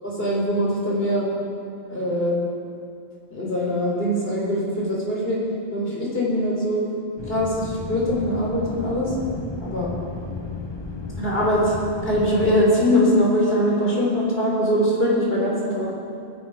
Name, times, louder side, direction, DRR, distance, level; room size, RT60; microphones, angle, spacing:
voice 1, 0.0-1.3 1.9-2.4 3.3-5.4 5.7-6.8 7.3-9.1 9.6-9.9 11.2-11.7 12.0-16.0, equal, 60° left, -4 dB, 4.0 m, -22 dB
sound 1, 7.2-12.6, left 3 dB, 25° left, 1.0 m, -34 dB
18.5 x 10.5 x 4.8 m, 2.4 s
omnidirectional pair, 1.1 m